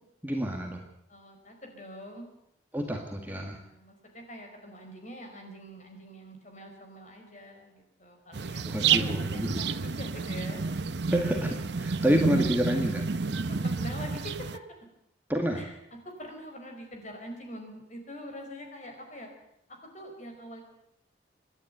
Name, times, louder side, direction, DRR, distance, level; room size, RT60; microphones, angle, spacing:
voice 1, 0.2-0.8 2.7-3.6 8.7-9.6 11.1-13.1 15.3-15.6, equal, 10° right, 2 dB, 1.9 m, -28 dB
voice 2, 1.1-2.3 3.3-10.6 13.4-14.6 15.5-15.8 16.0-19.3 19.7-20.6, equal, 35° left, 3 dB, 5.1 m, -44 dB
sound 1, 8.3-14.6, right 5 dB, 60° right, 0.7 m, -30 dB
27.0 x 11.0 x 9.2 m, 0.76 s
head